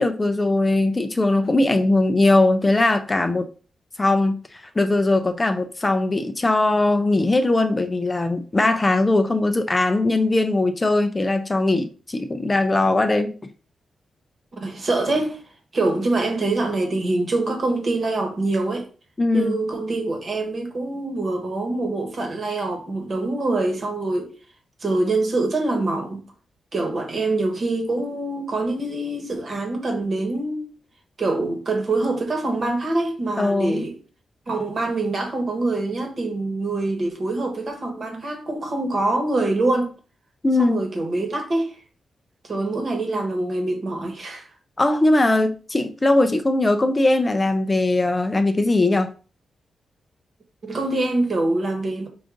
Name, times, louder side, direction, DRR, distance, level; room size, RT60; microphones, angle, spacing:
voice 1, 0.0-3.5 4.0-13.3 19.2-19.5 33.4-33.8 40.4-40.8 44.8-49.1, left 2 dB, 20° left, 0.4 m, -20 dB
voice 2, 14.5-15.4 15.7-18.9 19.3-24.3 24.8-26.2 26.7-30.7 31.2-33.9 34.5-39.9 40.6-41.8 42.4-44.5 50.6-52.1, right 2 dB, 45° right, 1.1 m, -24 dB
4.7 x 2.5 x 3.7 m
wide cardioid pair, 110°, 0 cm